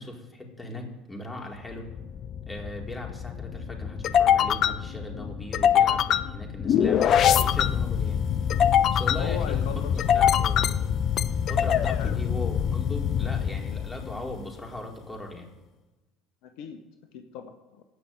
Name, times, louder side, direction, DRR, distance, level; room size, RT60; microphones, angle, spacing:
voice 1, 0.0-1.9 2.5-8.2 8.9-9.6 9.9-10.9 11.5-15.5, left 1 dB, 15° left, 0 dB, 4.4 m, -38 dB
sound 1, 1.7-14.5, left 9 dB, 50° left, 0.7 m, -24 dB
voice 2, 9.2-10.5 11.9-12.2 16.4-16.8 17.1-17.8, left 7 dB, 65° left, 7 dB, 1.2 m, -38 dB
16.0 x 6.1 x 8.7 m, 1.1 s
hypercardioid pair, 65°, 0 cm